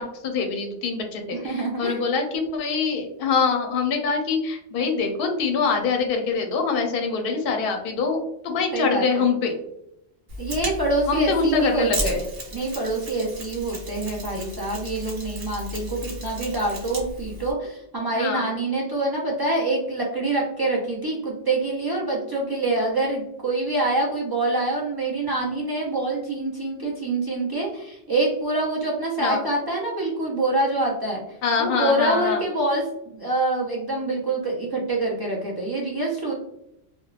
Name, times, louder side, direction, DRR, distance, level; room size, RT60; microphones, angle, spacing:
voice 1, 0.0-9.6 11.1-12.2 18.1-18.5 29.2-29.4 31.4-32.4, left 5 dB, 60° left, 4 dB, 0.7 m, -24 dB
voice 2, 1.3-2.0 8.7-9.2 10.4-12.2 12.5-31.2 31.6-36.3, right 2 dB, 40° right, -4 dB, 0.3 m, -25 dB
Mechanisms, 10.3-17.5, equal, 60° right, 1.0 m, -34 dB
2.9 x 2.2 x 2.3 m, 0.80 s
omnidirectional pair, 1.2 m